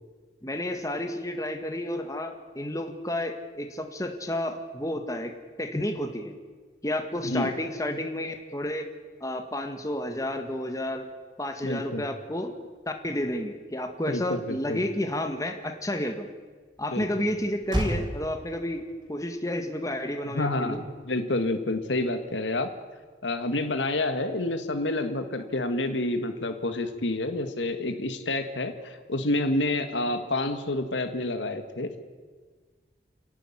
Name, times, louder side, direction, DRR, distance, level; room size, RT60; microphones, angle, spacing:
voice 1, 0.4-5.3 5.6-6.3 6.8-8.9 9.2-11.0 11.4-12.6 12.9-16.3 16.8-18.8 19.1-20.8, left 1 dB, 20° left, 5 dB, 1.8 m, -31 dB
voice 2, 11.6-12.1 14.1-14.8 16.9-17.3 20.3-20.8 21.0-22.7 23.2-32.0, left 2 dB, 90° left, 8 dB, 1.9 m, -28 dB
Motor vehicle (road), 13.6-22.2, equal, 25° right, 4.7 m, -38 dB
29.0 x 11.5 x 10.0 m, 1.5 s
head